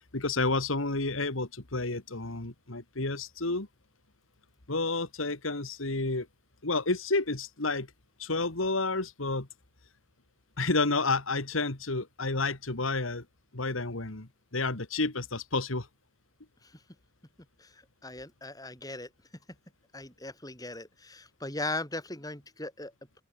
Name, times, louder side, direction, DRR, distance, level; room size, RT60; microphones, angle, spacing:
voice 1, 0.1-3.7 4.7-6.3 6.6-7.9 8.2-9.5 10.6-13.3 13.5-15.9, left 3 dB, 90° left, 2.4 m, -30 dB
voice 2, 17.6-19.1 19.9-23.2, left 2 dB, 20° left, 4.7 m, -39 dB
open air
head